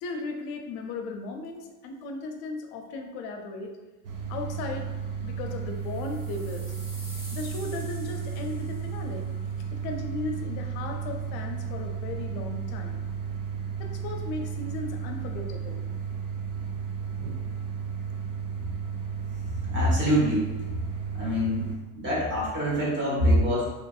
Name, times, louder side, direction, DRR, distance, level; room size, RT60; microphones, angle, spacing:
voice 1, 0.0-3.8 4.3-6.6 7.3-9.3 9.7-13.0 13.8-15.8, left 3 dB, 65° left, 3 dB, 0.5 m, -36 dB
sound 1, 4.0-21.8, right 7 dB, 80° right, 0.7 m, -34 dB
sound 2, 5.8-9.0, equal, 5° right, 0.5 m, -47 dB
voice 2, 19.5-20.5 21.1-21.7 21.9-23.7, equal, 25° right, -5 dB, 1.1 m, -25 dB
2.9 x 2.5 x 2.3 m, 1.2 s
supercardioid pair, 110°, 41 cm